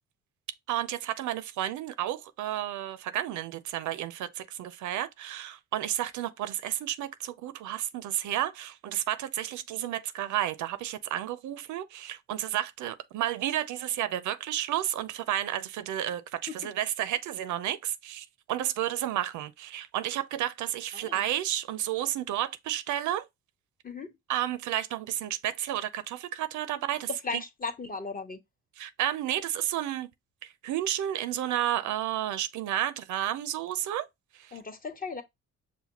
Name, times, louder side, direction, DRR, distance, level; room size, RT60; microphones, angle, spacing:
voice 1, 0.7-23.3 24.3-27.4 28.8-30.1 30.4-34.1 34.4-34.6, right 12 dB, 75° right, 0.5 m, -31 dB
voice 2, 27.1-28.4 34.5-35.2, left 4 dB, 30° left, 0.8 m, -36 dB
5.7 x 2.2 x 2.8 m
cardioid pair, 90°, 30 cm